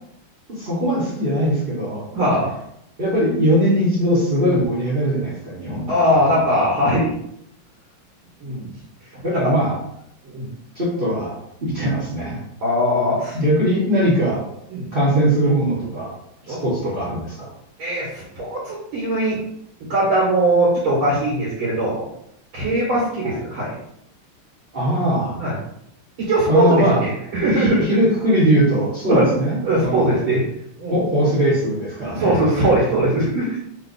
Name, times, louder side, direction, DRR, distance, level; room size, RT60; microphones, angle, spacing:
voice 1, 0.5-2.3 3.0-6.4 9.2-9.8 10.7-12.4 13.3-14.4 14.9-16.1 16.5-17.5 23.2-23.4 24.7-25.4 26.5-27.0 27.6-30.1 30.9-32.4, equal, 35° right, -7 dB, 0.9 m, -20 dB
voice 2, 2.1-2.5 5.9-7.1 8.4-8.7 9.0-9.5 10.2-10.5 12.6-13.4 14.7-14.9 16.5-16.6 17.8-19.4 19.9-22.0 22.5-23.8 25.4-25.6 26.2-27.8 29.1-29.3 29.6-30.5 30.8-30.9 32.1-33.6, right 1 dB, 85° right, -6 dB, 2.2 m, -20 dB
4.3 x 2.4 x 3.9 m, 0.76 s
omnidirectional pair, 2.3 m